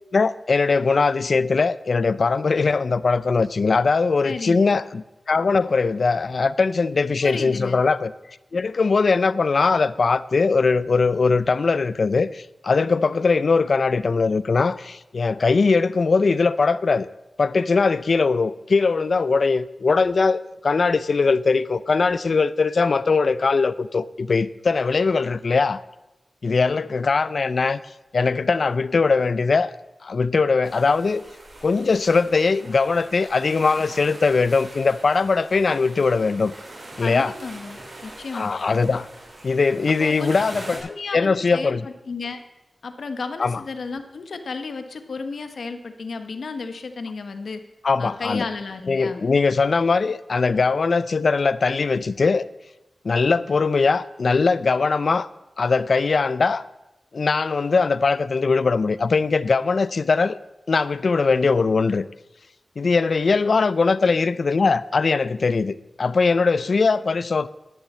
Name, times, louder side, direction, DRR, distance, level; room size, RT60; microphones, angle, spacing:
voice 1, 0.1-8.1 8.5-17.1 17.4-25.8 26.4-27.8 28.1-29.7 30.0-31.2 31.6-36.5 37.0-37.3 38.3-39.1 39.4-41.9 43.4-43.6 47.8-48.5 48.9-52.5 53.0-55.3 55.6-56.6 57.1-60.4 60.7-62.0 62.8-67.5, left 4 dB, 65° left, 0.5 m, -20 dB
voice 2, 4.2-4.8 7.2-7.8 37.0-38.5 40.0-40.3 40.8-42.4 42.8-47.6 48.0-49.2, left 4 dB, 85° left, 1.1 m, -33 dB
sound 1, 30.6-40.8, right 1 dB, 60° right, 4.3 m, -43 dB
11.5 x 7.3 x 8.4 m
wide cardioid pair, 90°, 0 cm